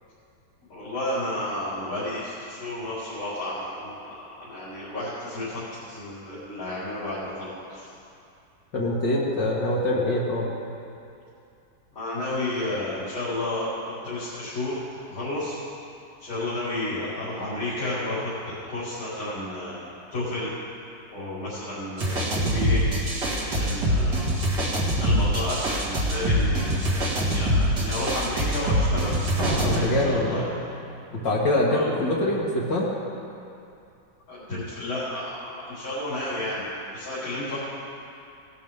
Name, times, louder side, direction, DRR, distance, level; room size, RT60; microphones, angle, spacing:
voice 1, 0.7-5.6 5.9-7.9 11.9-14.8 15.1-15.6 16.2-19.8 20.1-20.5 21.1-22.8 23.4-24.1 25.0-29.2 29.7-30.5 31.7-31.9 34.3-36.6 36.9-37.6, left 1 dB, 80° left, -13 dB, 4.7 m, -31 dB
voice 2, 8.7-10.5 23.5-23.7 29.6-30.4 31.1-32.9, left 1 dB, 65° left, -5 dB, 2.2 m, -24 dB
sound 1, 22.0-29.8, equal, 60° right, 2.6 m, -24 dB
sound 2, 29.4-31.2, right 1 dB, 80° right, 2.6 m, -30 dB
18.0 x 12.0 x 3.6 m, 2.6 s
omnidirectional pair, 2.2 m